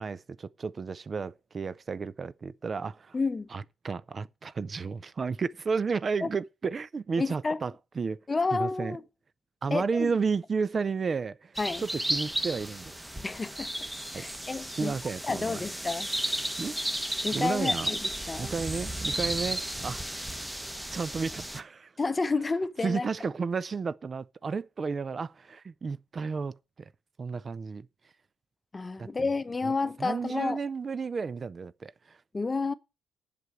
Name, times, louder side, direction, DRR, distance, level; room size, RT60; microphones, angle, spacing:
voice 1, 0.0-3.2 3.5-8.2 8.5-9.0 9.6-13.1 14.1-14.3 14.7-15.6 16.6-16.8 17.3-17.9 18.4-20.5 20.9-21.9 22.8-26.9 27.2-27.9 29.0-29.3 29.6-29.7 30.0-32.2, right 5 dB, 40° right, 0.5 m, -32 dB
voice 2, 3.1-3.5 6.2-6.3 7.2-7.6 8.3-9.0 9.7-10.1 11.6-11.8 13.2-13.7 14.1-15.0 15.2-16.1 17.2-18.5 22.0-23.1 28.7-30.6 32.3-32.7, left 3 dB, 25° left, 0.8 m, -30 dB
sound 1, 11.6-21.6, right 1 dB, 5° right, 1.2 m, -34 dB
7.9 x 6.8 x 8.2 m
cardioid pair, 90°, 0 cm